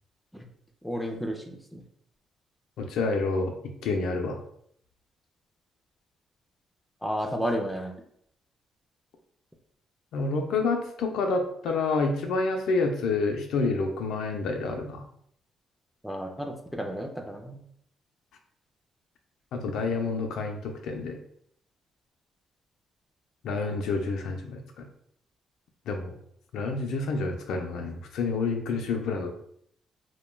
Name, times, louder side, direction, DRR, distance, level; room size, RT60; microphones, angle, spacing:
voice 1, 0.8-1.8 7.0-7.9 16.0-17.6, equal, ahead, 2 dB, 0.4 m, -32 dB
voice 2, 2.8-3.5 3.8-4.4 10.1-15.1 19.5-21.2 23.4-24.9 25.9-26.1 26.5-29.3, left 3 dB, 80° left, 4 dB, 0.4 m, -28 dB
2.2 x 2.1 x 3.1 m, 0.69 s
cardioid pair, 90°, 0 cm